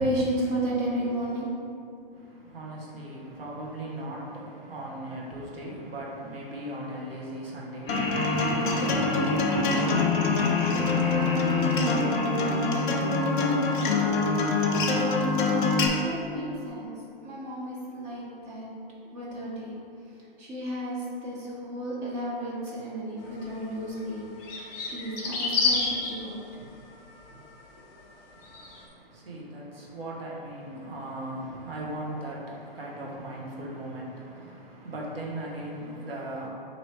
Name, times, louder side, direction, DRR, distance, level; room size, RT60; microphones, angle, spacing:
voice 1, 0.0-1.5 16.0-16.9 17.2-18.7 19.1-19.8 20.4-26.4, right 1 dB, 25° right, -6 dB, 0.9 m, -32 dB
voice 2, 2.1-13.4 28.3-36.5, right 1 dB, 75° right, -3 dB, 1.0 m, -39 dB
Laughter, 7.8-14.0, left 1 dB, 15° left, 0.7 m, -34 dB
Acoustic guitar, 7.9-15.9, left 3 dB, 55° left, 0.6 m, -25 dB
sound 1, 23.4-23.5 24.4-26.1 28.4-28.8, left 4 dB, 40° left, 1.0 m, -27 dB
3.2 x 2.7 x 4.3 m, 2.7 s
hypercardioid pair, 125°, 30 cm